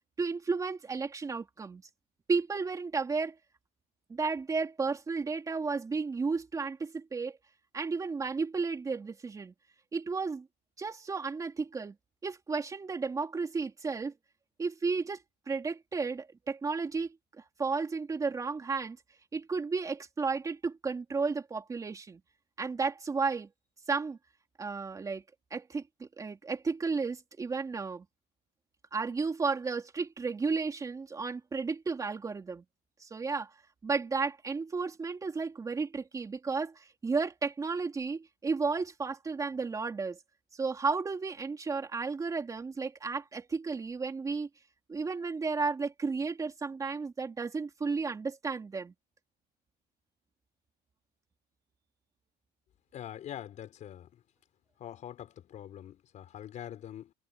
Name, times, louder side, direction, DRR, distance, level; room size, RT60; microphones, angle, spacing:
voice 1, 0.2-1.8 2.3-3.3 4.1-7.4 7.7-9.5 9.9-10.5 10.8-11.9 12.2-14.1 14.6-19.0 19.3-22.2 22.6-23.5 23.9-24.2 24.6-25.2 25.5-28.0 28.9-32.6 33.0-33.5 33.8-40.2 40.5-44.5 44.9-48.9, right 4 dB, 20° right, 3.3 m, -33 dB
voice 2, 52.9-54.1 54.8-57.1, left 11 dB, 40° left, 4.6 m, -44 dB
cardioid pair, 165°, 19 cm